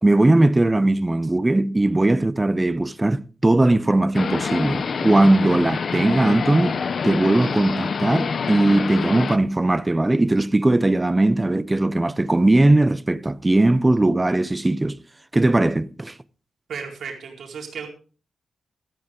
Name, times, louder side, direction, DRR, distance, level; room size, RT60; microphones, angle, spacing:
voice 1, 0.0-15.0 15.3-16.1, right 2 dB, 15° right, 0.5 m, -19 dB
sound 1, 4.1-9.4, left 5 dB, 45° left, 0.6 m, -26 dB
voice 2, 16.7-17.9, right 6 dB, 65° right, 4.2 m, -34 dB
15.0 x 13.5 x 3.7 m
wide cardioid pair, 155°, 0 cm